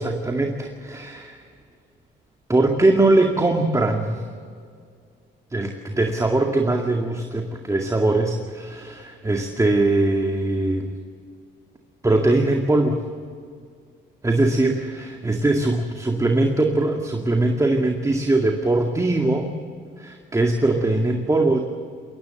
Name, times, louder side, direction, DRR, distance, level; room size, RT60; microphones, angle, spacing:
voice 1, 0.0-1.4 2.5-4.2 5.5-10.9 12.0-13.0 14.2-19.5 20.0-21.6, right 2 dB, 15° right, 2 dB, 2.2 m, -21 dB
22.5 x 18.0 x 7.8 m, 2.1 s
cardioid pair, 90°, 20 cm